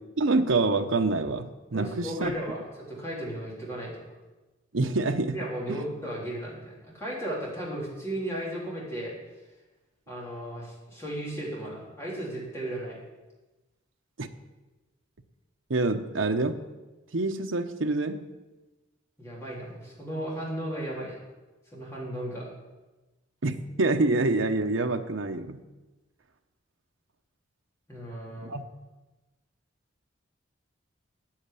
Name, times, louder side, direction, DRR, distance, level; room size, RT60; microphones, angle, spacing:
voice 1, 0.2-2.3 4.7-5.8 14.2-14.3 15.7-16.6 17.1-18.3 23.4-25.6 28.4-28.6, right 3 dB, 80° right, 6 dB, 0.9 m, -26 dB
voice 2, 1.7-4.1 5.3-9.1 10.1-13.0 19.2-21.2 21.7-22.5 27.9-28.5, right 1 dB, 15° left, -5 dB, 3.6 m, -35 dB
8.8 x 8.8 x 8.3 m, 1.1 s
head